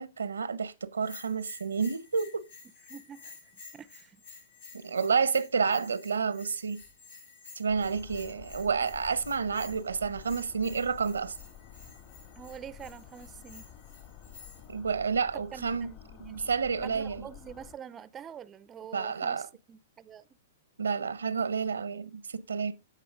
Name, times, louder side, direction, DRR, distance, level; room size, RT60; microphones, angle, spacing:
voice 1, 0.0-2.4 4.7-6.8 7.6-11.3 14.7-15.9 16.2-17.2 18.9-19.5 20.8-22.7, right 5 dB, 90° right, 0.8 m, -30 dB
Bell, 1.0-14.7, left 4 dB, 80° left, 5.7 m, -52 dB
voice 2, 2.9-3.4 3.7-4.2 4.8-4.9 12.4-13.7 15.3-16.5 16.8-20.3, right 8 dB, 20° right, 0.5 m, -46 dB
sound 1, 7.7-17.8, left 10 dB, 50° left, 2.0 m, -50 dB
16.0 x 5.5 x 2.5 m
hypercardioid pair, 120°, 0 cm